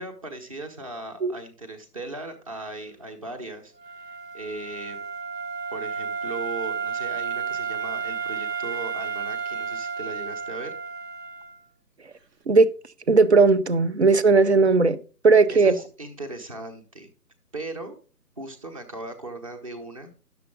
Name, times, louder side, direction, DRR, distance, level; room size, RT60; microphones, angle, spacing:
voice 1, 0.0-5.0 5.7-10.8 15.5-17.1 17.5-18.0 18.4-20.1, right 2 dB, 20° right, 0.9 m, -38 dB
Wind instrument woodwind instrument, 3.8-11.6, right 6 dB, 75° right, 1.1 m, -32 dB
voice 2, 13.1-15.0 15.2-15.7, right 4 dB, 45° right, 0.6 m, -17 dB
11.5 x 6.9 x 3.8 m
figure-of-eight pair, 155°, 50 cm